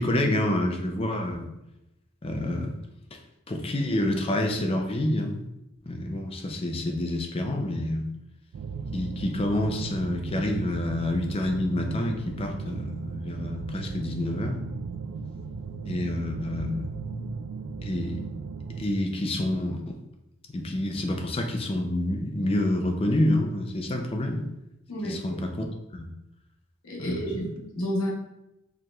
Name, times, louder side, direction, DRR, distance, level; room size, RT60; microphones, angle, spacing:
voice 1, 0.0-1.5 2.2-2.7 3.1-3.2 3.5-5.4 5.9-8.1 8.9-14.6 15.8-17.1 17.8-18.3 18.8-20.0 20.5-24.4 25.0-25.6 25.9-26.1 27.0-27.3, left 1 dB, 25° left, 3 dB, 0.4 m, -28 dB
sound 1, 8.5-18.9, right 4 dB, 70° right, 0.3 m, -36 dB
voice 2, 26.8-28.1, equal, 75° left, -4 dB, 1.0 m, -30 dB
4.7 x 3.0 x 2.3 m, 0.90 s
head